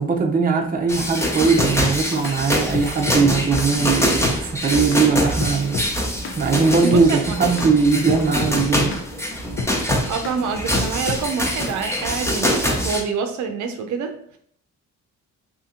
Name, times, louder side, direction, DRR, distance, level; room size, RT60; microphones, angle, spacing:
voice 1, 0.0-5.8 6.4-9.0, right 4 dB, 30° right, 2 dB, 0.6 m, -20 dB
sound 1, 0.9-1.8 2.2-2.4 2.7-3.8 4.2-4.4 4.9-5.1 5.4-5.9 6.2-6.4 6.9-7.1 7.6-7.7 8.1-9.1 9.6-10.4 10.7-11.3, left 4 dB, 45° left, 0.6 m, -29 dB
sound 2, 0.9-13.0, equal, 10° left, 0.8 m, -24 dB
voice 2, 6.8-7.3 10.1-14.4, right 5 dB, 70° right, 5 dB, 0.6 m, -26 dB
2.9 x 2.7 x 3.7 m, 0.62 s
cardioid pair, 90°, 30 cm